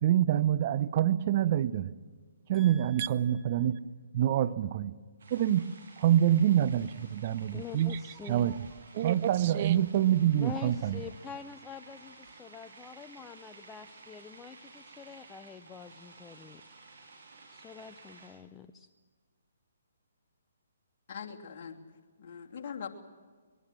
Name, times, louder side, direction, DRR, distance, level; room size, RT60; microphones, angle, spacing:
voice 1, 0.0-1.9 2.5-3.8 4.1-4.9 5.3-5.7 6.0-8.6 8.9-11.0, right 11 dB, 40° right, 0.7 m, -26 dB
voice 2, 2.5-3.6 7.5-8.5 10.4-16.6 17.5-18.9, left 7 dB, 15° left, 0.7 m, -46 dB
sound 1, 5.2-18.3, right 3 dB, 65° right, 8.0 m, -54 dB
voice 3, 21.1-21.8 22.2-22.9, left 7 dB, 50° left, 2.9 m, -41 dB
23.5 x 22.0 x 7.5 m
hypercardioid pair, 140°, 0 cm